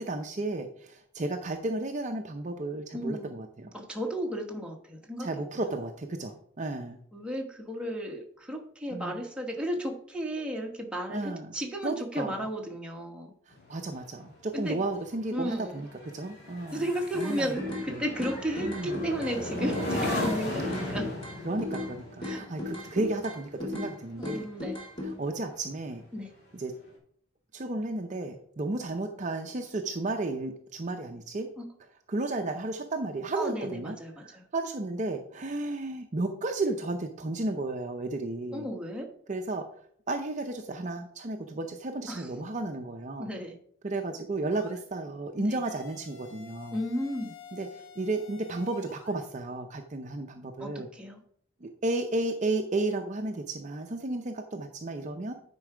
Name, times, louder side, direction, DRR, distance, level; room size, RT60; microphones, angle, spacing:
voice 1, 0.0-3.7 5.2-7.0 8.9-9.2 11.1-11.5 11.8-12.5 13.7-16.8 17.1-17.6 17.9-18.0 18.6-19.0 21.4-24.5 25.0-26.0 26.5-26.8 27.5-31.5 32.1-34.0 34.2-38.7 39.3-39.7 40.1-43.3 43.8-46.8 47.5-50.9 51.6-55.3, right 2 dB, 35° right, 5 dB, 0.6 m, -33 dB
voice 2, 2.9-3.4 3.7-5.3 7.1-13.3 14.5-14.8 15.3-15.7 16.7-21.1 22.2-22.4 24.2-24.8 26.1-26.3 31.6-31.7 33.3-34.4 38.5-39.1 42.1-42.3 43.2-43.5 45.5-45.6 46.7-47.3 50.6-51.2, equal, 5° right, 0 dB, 1.1 m, -34 dB
sound 1, 13.5-25.2 25.6-25.9, left 1 dB, 50° left, 2.7 m, -37 dB
sound 2, 17.2-17.9 18.2-19.9 20.2-21.9 22.2-23.9 24.2-25.1, left 2 dB, 25° left, 2.4 m, -35 dB
sound 3, 44.5-44.8 45.6-49.2, left 6 dB, 80° left, 1.0 m, -49 dB
9.5 x 4.6 x 4.9 m, 0.63 s
head